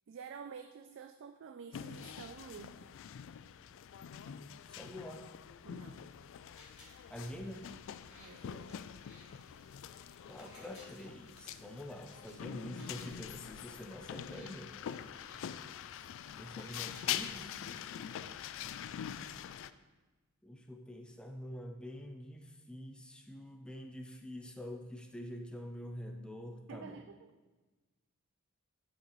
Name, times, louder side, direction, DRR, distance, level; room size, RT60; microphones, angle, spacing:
voice 1, 0.1-2.8 5.6-6.0 8.2-8.8 26.7-27.3, right 6 dB, 60° right, 7 dB, 0.4 m, -49 dB
sound 1, 1.7-19.7, left 9 dB, 60° left, 0.3 m, -44 dB
voice 2, 4.7-5.3 7.1-7.7 10.2-14.8 16.4-18.0 20.4-27.0, equal, 5° left, 3 dB, 0.5 m, -46 dB
sound 2, 6.5-18.2, left 1 dB, 30° left, 2.9 m, -62 dB
11.0 x 6.5 x 3.1 m, 1.2 s
head